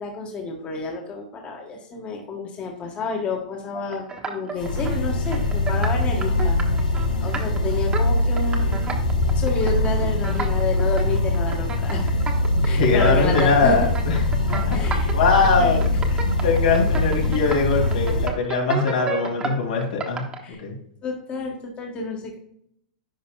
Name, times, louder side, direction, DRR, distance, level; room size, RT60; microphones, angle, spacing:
voice 1, 0.0-6.6 7.2-8.8 9.3-12.2 12.6-13.8 14.7-15.1 15.6-16.1 20.4-20.6 21.0-22.4, left 3 dB, 30° left, 1 dB, 1.5 m, -30 dB
sound 1, 3.7-5.0 5.2-20.4, right 5 dB, 20° right, 1.2 m, -33 dB
Viral Circular Sawshine, 4.6-18.3, left 2 dB, 90° left, 1.7 m, -22 dB
voice 2, 12.5-14.1 14.5-14.8 15.1-15.8 16.4-20.2 20.6-20.7, left 4 dB, 75° left, 0 dB, 2.6 m, -21 dB
10.5 x 5.0 x 2.3 m, 0.72 s
hypercardioid pair, 120°, 4 cm